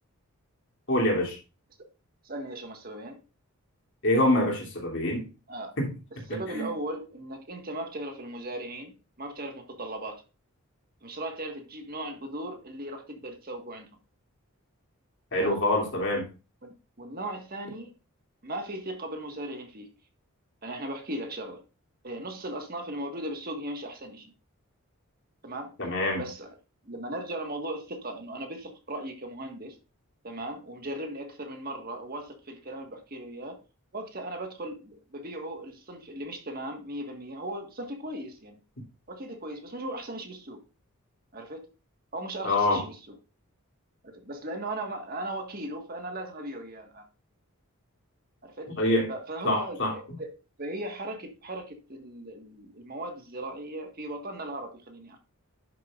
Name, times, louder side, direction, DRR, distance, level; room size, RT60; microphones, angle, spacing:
voice 1, 0.9-1.4 4.0-5.2 5.8-5.9 6.5-6.7 15.3-16.3 25.8-26.2 42.4-42.8 48.8-49.1 49.4-49.9, left 1 dB, 55° left, 2.9 m, -25 dB
voice 2, 2.2-3.2 5.5-5.7 6.3-10.2 11.0-13.9 15.3-15.6 16.6-17.9 18.4-19.9 20.6-21.6 22.0-24.3 25.4-25.8 26.2-26.6 26.8-29.8 30.2-33.6 33.9-38.6 39.1-40.6 41.3-41.7 42.1-43.2 44.0-47.1 48.4-48.8 49.1-55.2, right 1 dB, 40° right, 1.6 m, -37 dB
11.0 x 6.7 x 2.5 m
head